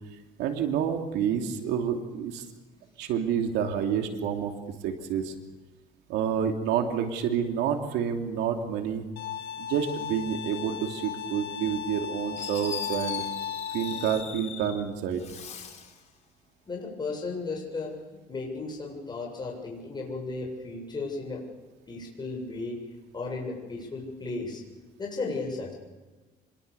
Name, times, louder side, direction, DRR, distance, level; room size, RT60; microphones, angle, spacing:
voice 1, 0.4-2.5 3.0-4.5 4.8-5.3 6.1-9.1 9.6-13.2 13.7-15.2, right 8 dB, 90° right, 4 dB, 3.0 m, -28 dB
Bowed string instrument, 9.2-14.2, left 9 dB, 85° left, 1.9 m, -36 dB
Fireworks, 12.4-14.8 15.1-16.0, left 6 dB, 45° left, 5.2 m, -39 dB
voice 2, 16.6-21.4 21.9-22.8 23.1-24.7 25.0-25.7, left 3 dB, 25° left, -1 dB, 7.5 m, -35 dB
26.0 x 22.5 x 7.1 m, 1.2 s
cardioid pair, 110°, 17 cm